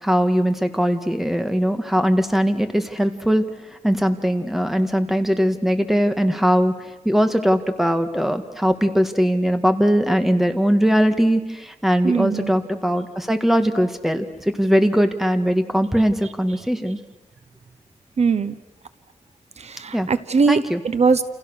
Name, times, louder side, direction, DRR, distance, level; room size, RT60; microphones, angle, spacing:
voice 1, 0.0-17.0 19.9-20.1 20.5-20.8, equal, ahead, 7 dB, 1.9 m, -20 dB
voice 2, 12.0-12.5 18.2-18.5 19.6-20.6 20.8-21.2, right 5 dB, 60° right, 13 dB, 1.0 m, -20 dB
29.5 x 29.0 x 6.5 m, 1.0 s
wide cardioid pair, 115°, 13 cm